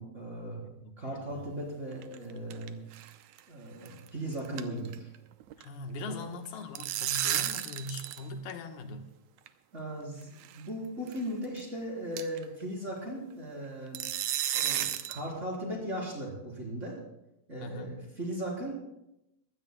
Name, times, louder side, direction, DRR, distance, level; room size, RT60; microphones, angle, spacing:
voice 1, 0.0-0.6 1.0-2.8 3.5-5.1 6.1-6.2 9.7-14.0 14.5-17.0 17.5-18.7, right 1 dB, 20° right, -4 dB, 3.8 m, -37 dB
sound 1, 1.9-2.7 2.9-3.1 3.4-3.5 3.9-4.1 4.3-5.2 5.4-5.6 6.5-8.2 8.5-8.6 9.5-9.6 10.4-10.6 11.1-11.2 11.6-11.7 12.2-12.4 13.9-15.2, right 12 dB, 85° right, 1.6 m, -32 dB
voice 2, 5.6-9.1 17.6-18.0, left 2 dB, 90° left, 5 dB, 3.1 m, -41 dB
22.5 x 17.0 x 2.2 m, 0.86 s
omnidirectional pair, 4.2 m